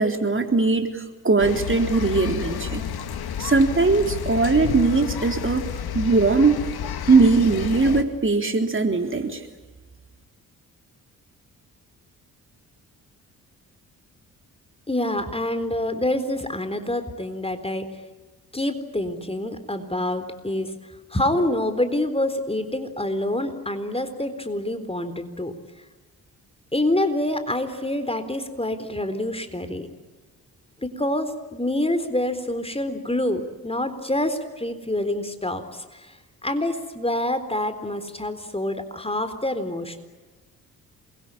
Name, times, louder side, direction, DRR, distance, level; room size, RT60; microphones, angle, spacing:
voice 1, 0.0-2.8 3.4-5.7 5.9-6.6 7.1-9.5, right 3 dB, 30° right, 5 dB, 3.8 m, -20 dB
sound 1, 1.4-8.0, left 8 dB, 60° left, 2.2 m, -31 dB
voice 2, 14.9-18.0 18.5-20.7 21.1-25.5 26.7-29.9 30.8-36.2 36.4-40.0, left 1 dB, 15° left, 10 dB, 4.0 m, -26 dB
28.5 x 23.0 x 8.8 m, 1.3 s
hypercardioid pair, 45°, 43 cm